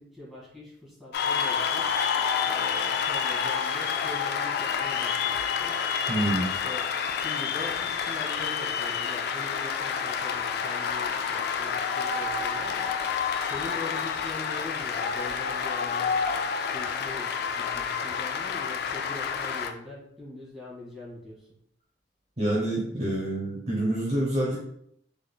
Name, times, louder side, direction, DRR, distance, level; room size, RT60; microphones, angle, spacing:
voice 1, 0.0-2.0 2.4-5.9 6.4-13.0 13.4-16.4 16.7-21.5, left 2 dB, ahead, -7 dB, 1.4 m, -43 dB
Cheering / Applause, 1.1-19.7, left 6 dB, 60° left, 0.3 m, -29 dB
voice 2, 6.1-6.5 22.4-24.6, right 1 dB, 35° right, -5 dB, 0.8 m, -27 dB
3.7 x 3.3 x 2.2 m, 0.71 s
head